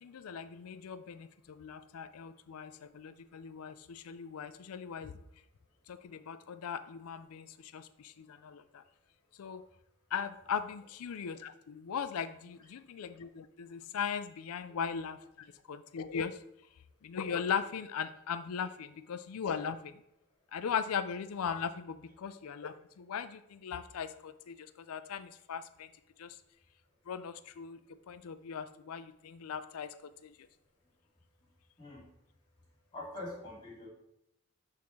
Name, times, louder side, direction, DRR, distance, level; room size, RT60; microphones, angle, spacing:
voice 1, 0.0-5.1 5.9-8.8 9.4-9.6 10.1-16.4 17.0-20.0 20.5-25.9 26.2-26.4 27.1-30.5, left 7 dB, 80° left, 12 dB, 0.4 m, -39 dB
voice 2, 32.9-33.9, left 1 dB, 20° left, -3 dB, 2.3 m, -44 dB
10.0 x 3.6 x 3.1 m, 0.81 s
head